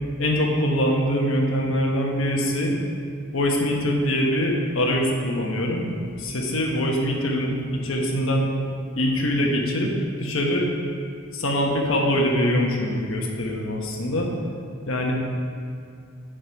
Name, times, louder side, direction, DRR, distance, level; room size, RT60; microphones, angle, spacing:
voice 1, 0.2-2.7 3.3-5.9 6.2-8.5 9.0-9.9 10.2-10.7 11.3-14.3 14.9-15.1, equal, 70° left, 0 dB, 1.3 m, -23 dB
9.1 x 5.2 x 5.2 m, 2.3 s
head